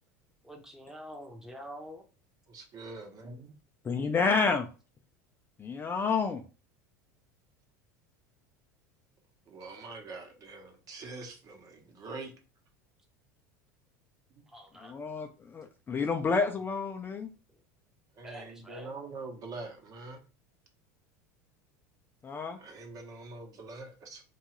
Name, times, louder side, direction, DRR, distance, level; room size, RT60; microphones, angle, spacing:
voice 1, 0.4-2.0 14.5-14.9 18.2-19.0, equal, 5° right, 2 dB, 0.7 m, -46 dB
voice 2, 2.5-3.5 9.5-12.3 18.2-20.2 22.5-24.2, right 3 dB, 40° right, 3 dB, 0.9 m, -44 dB
voice 3, 3.8-4.7 5.6-6.4 14.8-17.3 22.2-22.6, left 4 dB, 25° left, 5 dB, 0.4 m, -29 dB
2.7 x 2.3 x 3.0 m, 0.33 s
hypercardioid pair, 85°, 9 cm